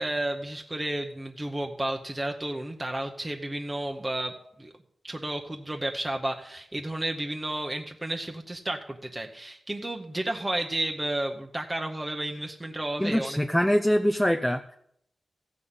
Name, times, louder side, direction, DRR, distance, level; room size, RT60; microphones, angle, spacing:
voice 1, 0.0-4.3 4.6-4.7 5.0-13.4, right 1 dB, 15° right, 2 dB, 0.9 m, -32 dB
voice 2, 13.0-14.8, equal, 5° left, 7 dB, 0.5 m, -24 dB
15.0 x 5.7 x 8.1 m, 0.71 s
wide cardioid pair, 125°, 0 cm